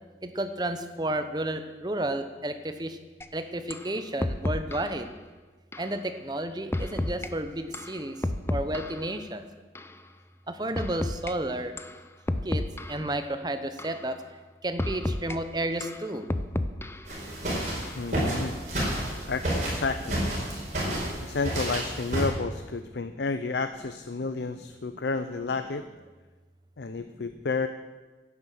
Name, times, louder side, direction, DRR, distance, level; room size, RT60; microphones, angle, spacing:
voice 1, 0.2-3.0 3.3-5.1 5.8-8.2 8.5-9.4 10.5-11.7 12.4-14.2 14.6-16.3 24.9-25.0 27.0-27.1, right 1 dB, 25° right, 9 dB, 0.9 m, -32 dB
sound 1, 3.2-3.3 3.7-3.9 4.2-5.0 5.7-5.9 6.7-7.3 7.7-9.1 9.8-9.9 10.8-11.3 11.8-12.0 12.3-13.1 13.8-14.0 14.8-15.4 15.8-17.1 17.8-18.0 18.8-19.2, left 1 dB, 15° left, 0.5 m, -31 dB
sound 2, 17.1-22.3, right 1 dB, 45° right, 5.2 m, -30 dB
voice 2, 18.0-18.6 19.3-20.2 21.2-25.8 26.8-27.7, left 4 dB, 80° left, 10 dB, 0.6 m, -31 dB
11.5 x 9.9 x 7.8 m, 1.3 s
head